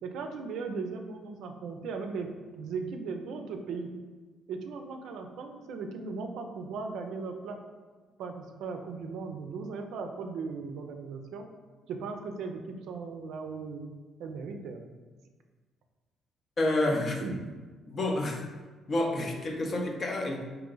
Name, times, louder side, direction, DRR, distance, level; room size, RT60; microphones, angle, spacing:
voice 1, 0.0-3.9 4.5-7.6 8.2-11.5 11.9-13.9 14.2-14.8 17.1-17.4 19.2-19.3, right 4 dB, 75° right, 5 dB, 0.4 m, -37 dB
voice 2, 16.6-17.2 17.9-18.5 18.9-20.4, left 1 dB, 45° left, 2 dB, 0.7 m, -29 dB
3.7 x 2.8 x 3.8 m, 1.3 s
supercardioid pair, 55°, 0 cm